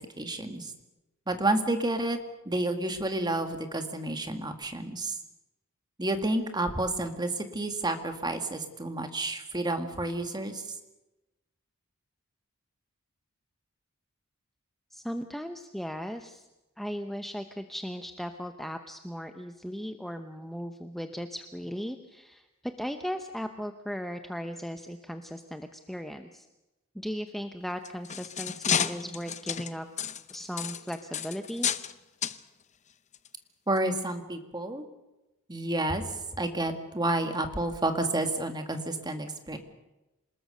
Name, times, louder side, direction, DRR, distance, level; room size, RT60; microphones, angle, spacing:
voice 1, 0.2-0.7 1.3-2.2 2.4-5.2 6.0-10.7 33.7-34.9 35.5-36.1 36.4-39.6, right 2 dB, 20° right, 6 dB, 2.0 m, -30 dB
voice 2, 14.9-16.5 16.8-26.5 26.9-29.9 30.3-31.7, equal, ahead, 6 dB, 0.9 m, -37 dB
sound 1, 27.7-31.9 32.2-32.4 33.1-33.3 33.8-33.9, left 8 dB, 35° left, 0.7 m, -31 dB
27.0 x 20.0 x 6.7 m, 1.0 s
head